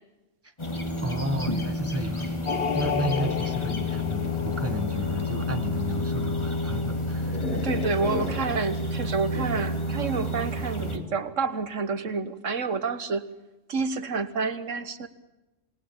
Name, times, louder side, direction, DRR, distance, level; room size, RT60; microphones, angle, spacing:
sound 1, 0.6-11.0, left 2 dB, 25° left, 2.6 m, -30 dB
voice 1, 1.0-7.5, right 1 dB, 10° right, 8 dB, 1.7 m, -33 dB
sound 2, 2.5-5.1 7.2-7.9, left 5 dB, 50° left, 1.3 m, -32 dB
sound 3, 6.7-11.4, left 2 dB, 85° left, 3.5 m, -39 dB
voice 2, 7.5-13.2 13.7-15.1, right 4 dB, 80° right, 12 dB, 1.7 m, -29 dB
28.0 x 20.0 x 7.2 m, 1.0 s
omnidirectional pair, 1.3 m